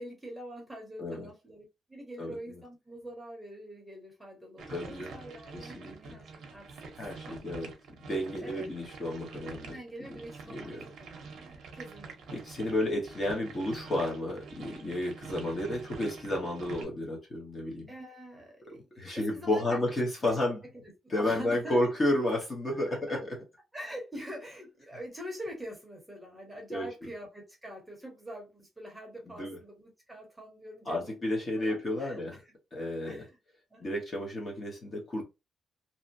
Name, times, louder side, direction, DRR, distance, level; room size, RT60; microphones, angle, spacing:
voice 1, 0.0-7.4 8.4-8.7 9.7-10.7 11.0-12.5 17.9-19.8 20.8-20.9 21.2-21.8 22.9-23.2 23.7-31.1 31.6-32.5 33.0-33.4 33.7-34.0, equal, 5° right, 0.9 m, -45 dB
voice 2, 1.0-1.3 2.2-2.6 4.7-5.2 5.5-6.2 7.0-7.7 8.0-9.8 10.5-10.8 12.3-17.9 18.7-20.6 21.1-23.4 26.7-26.9 29.3-29.6 30.9-32.4 32.7-33.2 33.8-35.2, left 1 dB, 30° left, 0.9 m, -32 dB
sound 1, 4.6-16.8, right 4 dB, 65° right, 0.7 m, -46 dB
2.8 x 2.1 x 2.6 m
cardioid pair, 155°, 0 cm